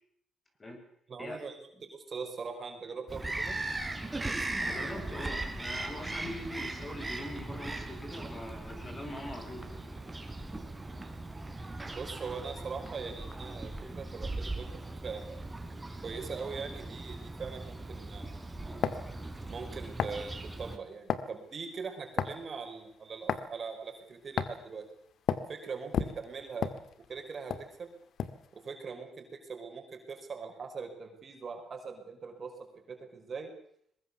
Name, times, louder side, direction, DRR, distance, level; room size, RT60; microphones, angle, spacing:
voice 1, 1.1-3.6 11.9-14.7 15.0-15.4 16.0-18.4 19.5-24.9 25.5-26.7 27.1-27.5 27.8-27.9 28.5-32.5 32.9-33.5, right 5 dB, 45° right, 4 dB, 5.1 m, -41 dB
Bird vocalization bird call bird song, 3.1-20.8, right 2 dB, 15° right, 3.6 m, -39 dB
voice 2, 4.6-9.9, left 1 dB, 30° left, 4 dB, 6.9 m, -42 dB
sound 1, 18.8-19.1 20.0-20.2 21.1-21.3 22.2-22.5 23.3-23.5 24.4-24.6 25.3-25.5 25.9-27.2 27.5-27.7 28.2-28.5, left 8 dB, 65° left, 1.7 m, -31 dB
23.0 x 21.0 x 6.9 m, 0.68 s
cardioid pair, 90°, 0 cm